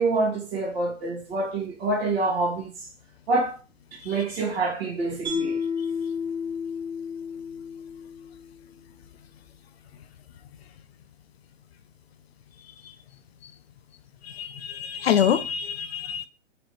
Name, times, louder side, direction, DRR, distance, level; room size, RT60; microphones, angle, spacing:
voice 1, 0.0-2.7 3.3-3.6 3.9-5.6, right 3 dB, 50° right, 1.8 m, -26 dB
Mallet percussion, 5.2-8.5, left 5 dB, 10° right, 1.6 m, -31 dB
voice 2, 14.3-16.3, left 8 dB, 55° left, 0.5 m, -25 dB
4.0 x 3.2 x 3.0 m
hypercardioid pair, 135°, 39 cm